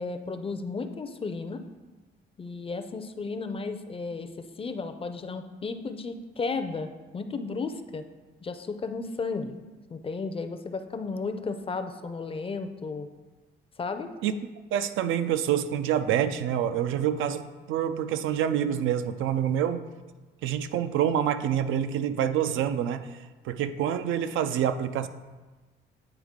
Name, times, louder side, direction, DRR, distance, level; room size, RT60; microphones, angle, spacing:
voice 1, 0.0-1.6 2.4-8.0 8.4-9.6 9.9-13.1 13.8-14.1, left 4 dB, 30° left, 8 dB, 0.5 m, -34 dB
voice 2, 14.7-19.8 20.4-23.1 23.4-25.1, right 9 dB, 80° right, 10 dB, 0.4 m, -27 dB
9.0 x 3.5 x 3.6 m, 1.2 s
cardioid pair, 90°, 20 cm